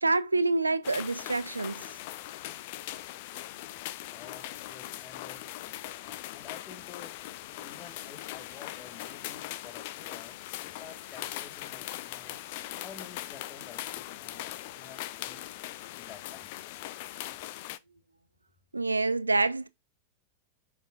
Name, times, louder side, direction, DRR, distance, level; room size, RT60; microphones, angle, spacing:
voice 1, 0.0-1.8 18.7-19.7, right 3 dB, 80° right, 0.5 m, -27 dB
sound 1, 0.8-17.8, left 15 dB, 50° left, 0.5 m, -40 dB
voice 2, 4.1-5.5 6.0-7.1 7.5-12.4 12.8-15.4 15.9-16.6, left 6 dB, 30° left, 1.7 m, -51 dB
8.7 x 5.1 x 2.4 m
figure-of-eight pair, 90°, 0 cm